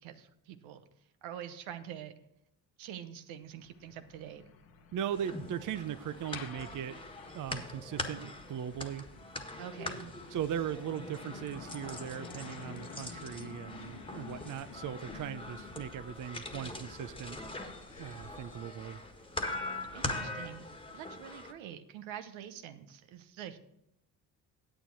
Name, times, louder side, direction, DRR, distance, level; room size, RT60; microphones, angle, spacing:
voice 1, 0.0-0.8 1.2-2.1 2.8-4.4 9.6-10.1 19.9-20.7 20.9-23.6, right 10 dB, 75° right, 9 dB, 1.0 m, -45 dB
Truck, 3.4-21.1, left 5 dB, 70° left, 1.4 m, -52 dB
voice 2, 4.9-7.0 7.3-9.1 10.3-17.4 18.0-19.0, right 9 dB, 40° right, 12 dB, 0.6 m, -38 dB
sound 1, 5.1-21.5, left 2 dB, 10° left, 1.5 m, -42 dB
10.0 x 8.4 x 4.5 m, 0.79 s
hypercardioid pair, 55°, 47 cm